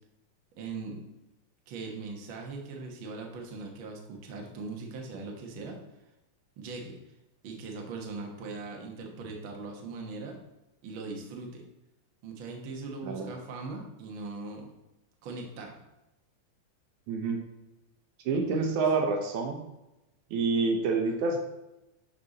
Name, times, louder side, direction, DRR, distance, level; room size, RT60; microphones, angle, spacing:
voice 1, 0.6-1.0 1.7-5.8 6.6-7.0 7.4-10.4 10.8-11.6 12.2-14.7 15.2-15.8 18.3-18.7, right 3 dB, 50° right, 1 dB, 1.6 m, -40 dB
voice 2, 17.1-17.4 18.3-19.6 20.3-21.4, right 4 dB, 75° right, 3 dB, 2.2 m, -27 dB
11.5 x 4.3 x 4.1 m, 0.94 s
omnidirectional pair, 3.6 m